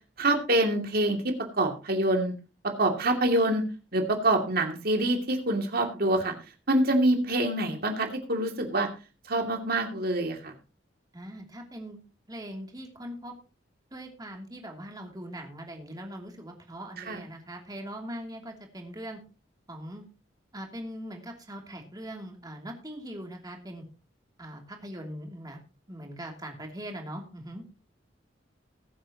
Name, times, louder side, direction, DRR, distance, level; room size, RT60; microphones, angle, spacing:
voice 1, 0.2-2.3 2.8-3.7 3.9-6.3 6.7-8.9 9.3-10.5 17.1-17.2, right 1 dB, 55° right, 3 dB, 2.6 m, -26 dB
voice 2, 11.1-12.0 12.3-13.3 13.9-19.2 19.7-20.0 20.5-23.8 24.4-25.6 25.9-27.6, equal, 20° right, 2 dB, 2.8 m, -41 dB
20.5 x 7.9 x 2.9 m, 0.33 s
head